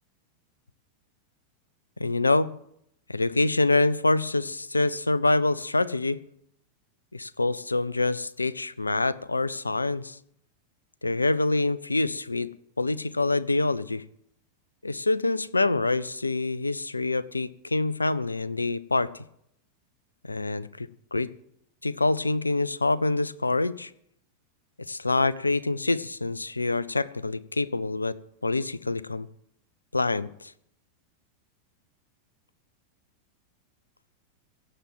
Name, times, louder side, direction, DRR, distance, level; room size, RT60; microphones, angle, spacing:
voice 1, 2.0-2.5 3.1-6.2 7.1-10.2 11.0-14.0 14.8-19.1 20.3-21.3 21.8-23.9 24.9-28.2 28.4-29.3 29.9-30.5, left 2 dB, 80° left, 20 dB, 0.5 m, -26 dB
16.5 x 7.5 x 7.7 m, 0.74 s
figure-of-eight pair, 90°, 0 cm